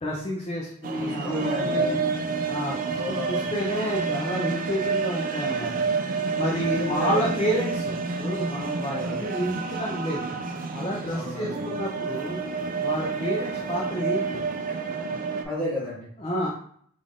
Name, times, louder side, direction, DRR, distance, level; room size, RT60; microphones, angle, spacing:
voice 1, 0.0-2.0 2.5-5.9 6.4-10.3 10.7-12.4 12.8-14.4 16.2-16.5, equal, 30° left, -3 dB, 0.6 m, -30 dB
sound 1, 0.8-15.4, right 4 dB, 40° right, 0.4 m, -29 dB
voice 2, 1.0-2.0 2.9-3.5 6.7-7.4 9.0-9.2 11.1-11.7 14.7-14.8 15.4-16.1, left 1 dB, 5° left, -12 dB, 1.1 m, -33 dB
3.7 x 2.5 x 3.6 m, 0.63 s
head